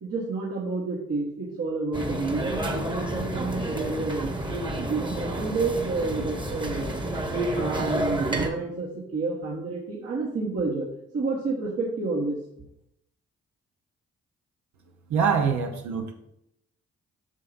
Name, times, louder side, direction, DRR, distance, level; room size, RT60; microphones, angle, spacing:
voice 1, 0.0-4.3 4.7-7.1 7.6-10.9 11.1-12.4, right 3 dB, 55° right, -5 dB, 1.6 m, -29 dB
sound 1, 1.9-8.5, right 1 dB, 15° right, 1.3 m, -30 dB
voice 2, 15.1-16.1, right 6 dB, 70° right, 3 dB, 1.2 m, -24 dB
8.1 x 5.9 x 2.7 m, 0.78 s
hypercardioid pair, 40°, 30 cm